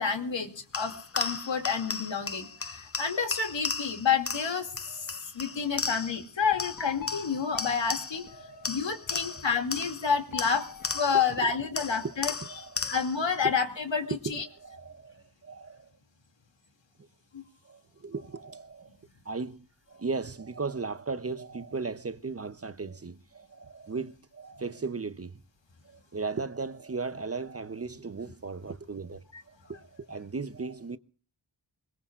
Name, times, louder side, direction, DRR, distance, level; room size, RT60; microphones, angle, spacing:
voice 1, 0.0-8.3 8.7-10.7 10.9-14.4 17.3-17.4 29.3-29.4, left 6 dB, 80° left, 2.5 m, -29 dB
sound 1, 0.7-6.3 6.6-8.3 8.6-11.3 11.8-13.2, left 5 dB, 30° left, 0.7 m, -36 dB
sound 2, 6.5-9.2 10.3-12.1, left 8 dB, 45° left, 1.5 m, -45 dB
voice 2, 8.3-8.7 9.1-9.4 11.8-12.2 12.4-12.9 13.4-13.5 14.2-15.9 17.0-17.1 17.6-18.9 19.2-25.4 25.8-31.0, right 4 dB, 35° right, 0.7 m, -37 dB
24.0 x 21.5 x 2.5 m
wide cardioid pair, 95°, 44 cm